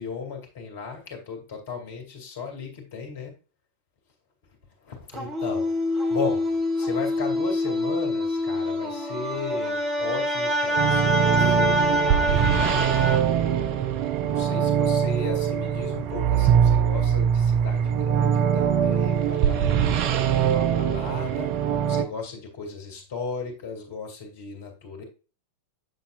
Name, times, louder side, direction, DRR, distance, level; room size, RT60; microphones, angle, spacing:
voice 1, 0.0-3.3 4.8-5.7 6.1-13.4 14.2-19.9 20.4-21.5 21.8-25.0, left 5 dB, 55° left, 3 dB, 2.4 m, -36 dB
sound 1, 5.1-13.2, left 1 dB, 20° right, 1.6 m, -25 dB
sound 2, 10.7-22.0, right 8 dB, 45° right, 0.7 m, -22 dB
7.9 x 6.9 x 2.4 m, 0.32 s
figure-of-eight pair, 90°, 0 cm